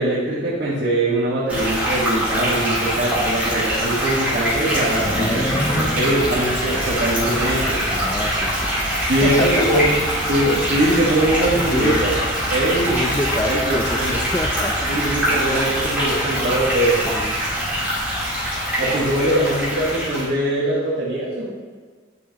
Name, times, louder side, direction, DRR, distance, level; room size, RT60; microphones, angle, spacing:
voice 1, 0.0-5.4 5.8-7.8 9.1-10.0 10.3-12.1 12.5-13.0 13.4-14.1 14.9-17.0 18.8-21.5, right 1 dB, 70° right, -8 dB, 1.4 m, -21 dB
sound 1, 1.5-20.2, equal, 10° right, 2.2 m, -23 dB
voice 2, 5.0-5.9 7.9-8.8 9.2-10.1 11.5-12.1 12.9-15.0 17.0-17.4, left 1 dB, 20° left, 5 dB, 0.4 m, -27 dB
sound 2, 6.1-15.3, right 2 dB, 45° right, 0.7 m, -33 dB
9.6 x 5.4 x 2.9 m, 1.5 s
head